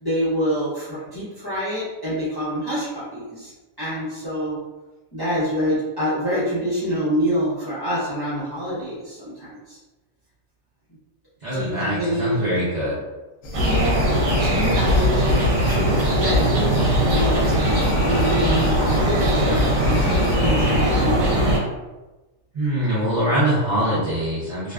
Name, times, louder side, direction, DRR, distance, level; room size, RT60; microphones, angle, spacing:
voice 1, 0.0-3.5 3.8-4.6 5.1-9.8 11.5-12.5 13.6-15.3 15.6-20.0 20.4-21.2, equal, 25° left, -11 dB, 0.6 m, -26 dB
voice 2, 11.4-13.0 22.5-24.7, right 1 dB, 50° right, -10 dB, 0.5 m, -23 dB
sound 1, 13.4-20.4, left 1 dB, 70° left, 0.9 m, -33 dB
sound 2, 13.5-21.6, equal, 75° right, 1.1 m, -20 dB
2.5 x 2.3 x 2.2 m, 1.1 s
omnidirectional pair, 1.4 m